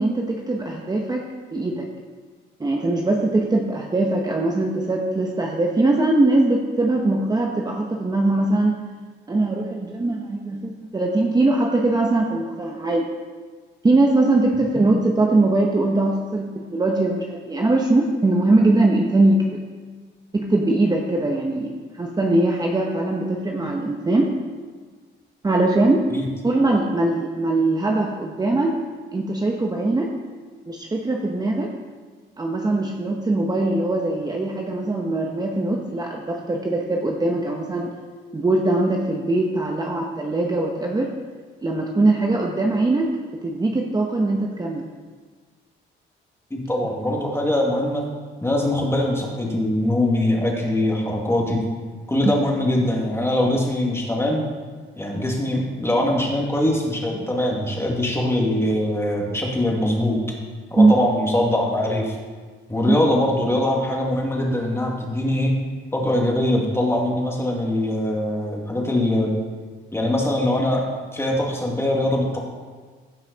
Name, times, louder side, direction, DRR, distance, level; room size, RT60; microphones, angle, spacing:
voice 1, 0.0-1.9 2.6-8.8 9.3-13.1 13.8-19.6 20.3-24.3 25.4-26.1 26.4-28.8 29.1-30.1 30.7-31.7 32.4-37.9 38.3-41.1 41.6-43.1 43.4-44.9 52.2-52.3 60.8-61.0 62.9-63.0, right 2 dB, 20° right, 1 dB, 0.9 m, -21 dB
voice 2, 46.5-48.0 48.4-51.6 52.1-54.4 55.0-60.4 60.7-62.2 62.7-65.5 65.9-69.3 69.9-70.9 71.1-72.4, left 1 dB, 10° left, -1 dB, 2.2 m, -22 dB
15.5 x 5.7 x 4.0 m, 1.5 s
cardioid pair, 90°, 20 cm